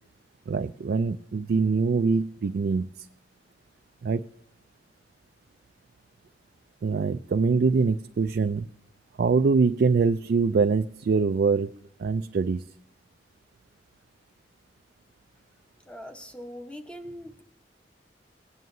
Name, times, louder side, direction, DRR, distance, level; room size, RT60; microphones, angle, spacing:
voice 1, 0.5-3.1 4.0-4.2 6.8-8.7 9.2-11.7 12.0-12.7, right 4 dB, 60° right, 8 dB, 0.3 m, -24 dB
voice 2, 15.8-17.4, equal, 5° left, 6 dB, 0.9 m, -41 dB
18.5 x 9.2 x 2.7 m, 0.71 s
head